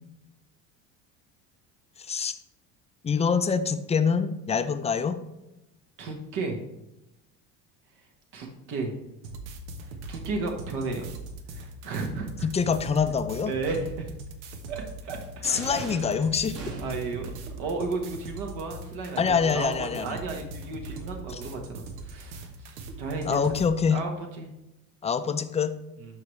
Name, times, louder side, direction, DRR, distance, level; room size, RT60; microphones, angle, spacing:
voice 1, 2.0-2.4 3.0-5.2 12.4-13.5 15.4-16.8 19.2-20.2 21.3-21.4 23.2-24.0 25.0-25.8, left 6 dB, 20° left, 10 dB, 0.5 m, -25 dB
voice 2, 6.0-6.6 8.3-8.9 10.1-11.1 11.5-12.5 13.5-14.1 14.7-15.6 16.6-17.3 17.6-23.4 23.9-24.5, right 3 dB, 65° right, 2 dB, 1.4 m, -33 dB
sound 1, 9.2-23.7, right 2 dB, 90° right, 1.2 m, -41 dB
sound 2, 15.4-17.2, right 3 dB, 45° right, 1.5 m, -41 dB
12.0 x 4.8 x 3.2 m, 0.91 s
supercardioid pair, 120°, 34 cm